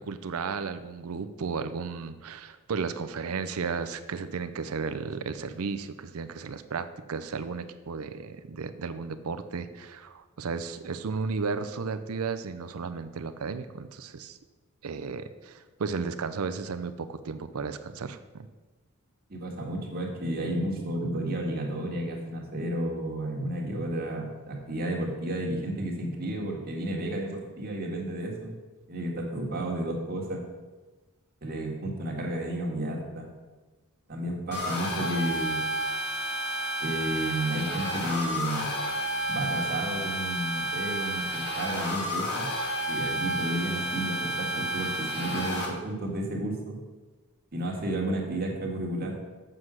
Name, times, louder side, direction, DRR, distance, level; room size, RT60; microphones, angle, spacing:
voice 1, 0.1-14.4 14.8-18.5, right 5 dB, 75° right, 11 dB, 0.5 m, -34 dB
voice 2, 19.3-28.5 28.9-30.4 31.4-33.3 34.1-35.6 36.8-38.7 39.3-42.5 42.9-46.8 47.5-49.2, right 1 dB, 45° right, 0 dB, 1.8 m, -32 dB
sound 1, 34.5-45.7, right 1 dB, 50° left, 1.8 m, -31 dB
7.6 x 6.3 x 6.2 m, 1.2 s
head